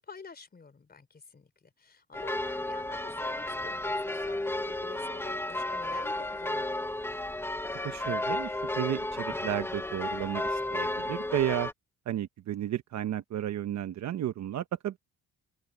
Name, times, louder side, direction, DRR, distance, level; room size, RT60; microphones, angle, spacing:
voice 1, 0.0-6.8, left 5 dB, 30° left, 3.5 m, -49 dB
sound 1, 2.1-11.7, left 1 dB, 10° left, 0.9 m, -33 dB
voice 2, 7.8-11.7 12.1-15.0, right 11 dB, 65° right, 1.0 m, -33 dB
cardioid pair, 90°, 30 cm